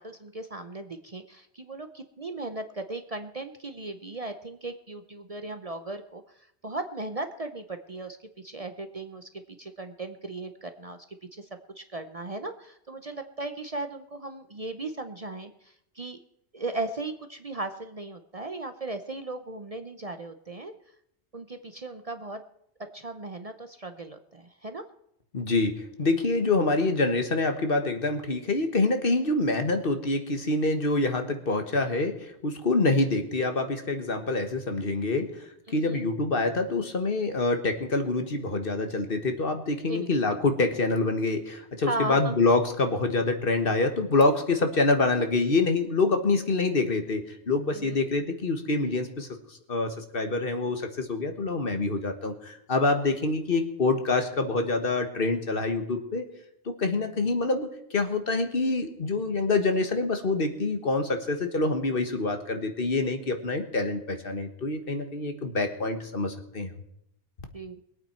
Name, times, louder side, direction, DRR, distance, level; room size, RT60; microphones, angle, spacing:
voice 1, 0.0-9.3 9.6-11.0 11.3-11.5 11.8-16.2 16.5-20.7 21.3-22.4 22.9-24.8 35.8-36.1 39.9-40.1 41.9-42.3 47.7-48.0 67.5-67.8, right 2 dB, 35° right, 8 dB, 0.8 m, -37 dB
voice 2, 25.3-35.3 35.7-56.3 56.6-66.7, left 3 dB, 55° left, 6 dB, 1.6 m, -26 dB
22.0 x 8.7 x 4.4 m, 0.75 s
omnidirectional pair, 1.1 m